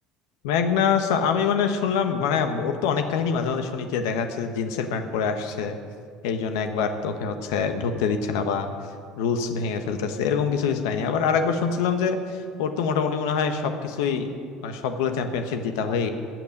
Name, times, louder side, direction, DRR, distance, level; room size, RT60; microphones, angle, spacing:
voice 1, 0.4-5.7 6.2-8.7 9.2-12.2 12.6-14.3 14.6-16.1, left 6 dB, 85° left, 7 dB, 1.1 m, -25 dB
15.0 x 6.0 x 9.5 m, 2.3 s
supercardioid pair, 110°, 2 cm